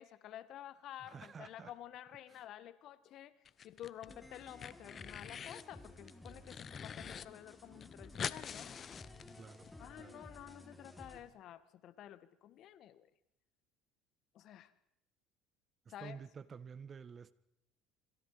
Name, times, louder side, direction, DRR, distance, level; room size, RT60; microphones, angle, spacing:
voice 1, 0.0-8.7 9.8-13.1 14.3-14.7 15.9-16.2, left 12 dB, 60° left, 1.8 m, -51 dB
voice 2, 1.1-1.7 2.3-2.4 9.4-10.2 16.0-17.3, right 6 dB, 35° right, 1.5 m, -51 dB
sound 1, 3.5-4.1 4.4-5.7 6.1-7.2 7.5-7.6 7.8-9.7, left 7 dB, 40° left, 1.0 m, -45 dB
sound 2, 4.1-11.2, left 1 dB, 10° left, 4.0 m, -55 dB
27.0 x 26.0 x 5.1 m
supercardioid pair, 90°, 0 cm